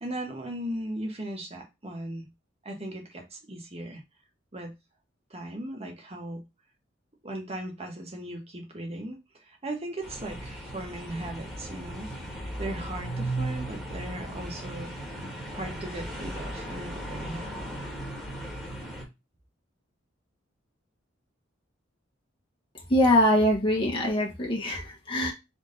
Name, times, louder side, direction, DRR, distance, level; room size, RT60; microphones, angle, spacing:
voice 1, 0.0-2.3 2.6-4.0 4.5-4.7 5.3-6.4 7.2-12.1 12.6-14.9 15.5-17.8, right 1 dB, 30° right, 2 dB, 1.2 m, -37 dB
sound 1, 10.0-19.0, right 1 dB, ahead, 1.6 m, -36 dB
voice 2, 22.9-25.3, left 1 dB, 25° left, 0 dB, 1.2 m, -23 dB
3.6 x 3.6 x 3.8 m, 0.23 s
head